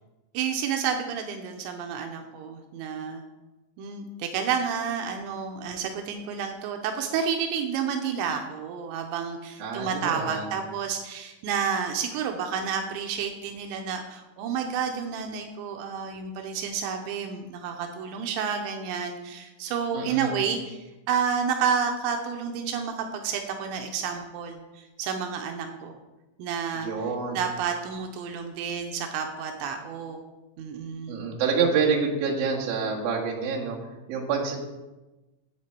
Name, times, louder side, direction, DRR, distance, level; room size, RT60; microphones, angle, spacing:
voice 1, 0.3-3.2 3.8-20.8 21.1-25.9 26.4-26.9 27.3-30.2 30.6-31.2, right 7 dB, 85° right, 4 dB, 3.0 m, -30 dB
voice 2, 9.6-10.5 19.9-20.3 26.7-27.4 31.1-33.8 34.1-34.6, right 5 dB, 60° right, -2 dB, 3.0 m, -27 dB
11.0 x 7.9 x 4.5 m, 1.1 s
omnidirectional pair, 5.3 m